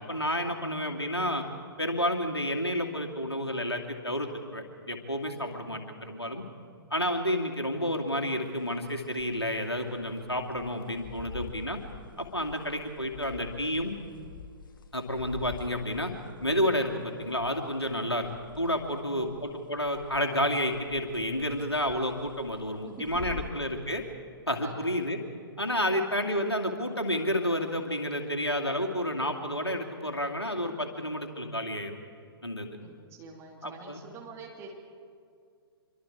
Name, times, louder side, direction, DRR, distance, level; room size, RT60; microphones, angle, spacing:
voice 1, 0.0-1.4 1.8-6.4 6.9-11.8 12.2-14.0 14.9-16.1 16.4-18.3 18.6-24.0 24.5-25.2 25.6-32.0 32.4-32.7 33.6-34.0, equal, 85° left, 2 dB, 2.6 m, -30 dB
sound 1, 8.4-19.5 19.8-20.3 20.6-23.5, left 7 dB, 55° left, 1.3 m, -47 dB
voice 2, 18.9-19.3 22.9-23.4 24.6-25.0 25.8-26.1 32.1-32.2 32.8-34.7, right 4 dB, 20° right, 0 dB, 3.0 m, -47 dB
26.0 x 24.0 x 4.9 m, 2.3 s
figure-of-eight pair, 120°, 13 cm